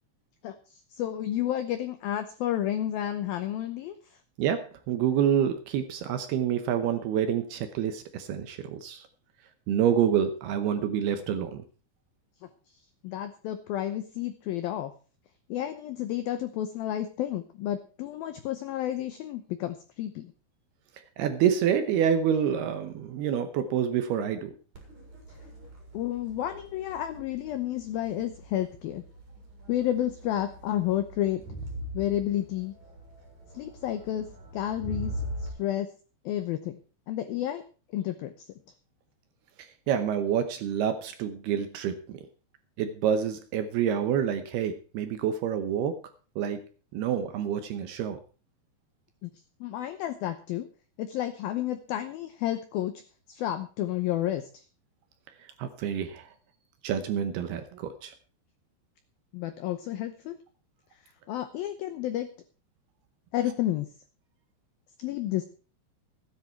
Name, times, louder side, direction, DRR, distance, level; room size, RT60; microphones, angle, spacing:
voice 1, 0.4-4.2 13.0-14.9 15.5-20.3 25.9-29.0 29.7-31.4 31.9-32.7 33.5-35.9 36.3-36.8 37.1-37.6 37.9-38.5 49.2-49.3 49.6-50.7 51.0-53.0 53.3-54.6 59.3-60.4 61.3-62.3 63.3-63.9 65.0-65.5, left 12 dB, 85° left, 10 dB, 2.1 m, -31 dB
voice 2, 4.4-9.0 9.7-11.6 21.2-24.5 39.6-42.2 42.8-46.0 46.4-46.6 46.9-48.2 55.6-56.3 56.8-58.1, right 8 dB, 75° right, 9 dB, 2.5 m, -27 dB
Crowd, 24.7-35.5, equal, 40° right, 5.5 m, -42 dB
16.0 x 10.5 x 4.6 m, 0.37 s
omnidirectional pair, 5.4 m